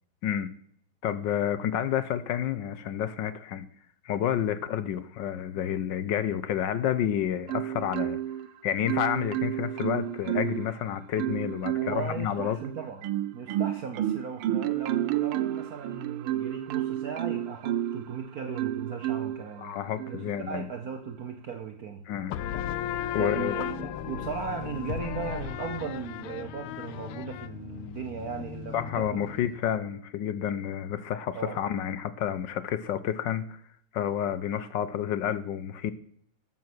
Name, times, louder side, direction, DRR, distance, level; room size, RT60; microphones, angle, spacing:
voice 1, 0.2-0.5 1.0-3.7 4.0-8.2 8.6-12.6 19.6-20.7 22.1-22.3 23.1-23.5 28.7-33.6 33.9-35.9, left 10 dB, 70° left, 14 dB, 1.2 m, -30 dB
Marimba xylophone, 7.5-8.5 8.9-10.7 11.2-12.1 12.6-18.1 18.6-19.4 20.0-20.2, right 12 dB, 80° right, 1.5 m, -30 dB
voice 2, 11.7-13.1 13.3-19.7 20.1-22.0 23.2-29.2 31.3-31.6, right 6 dB, 55° right, 6 dB, 1.1 m, -37 dB
sound 1, 22.3-29.6, left 10 dB, 85° left, 1.6 m, -35 dB
13.0 x 7.6 x 6.1 m, 0.63 s
omnidirectional pair, 2.4 m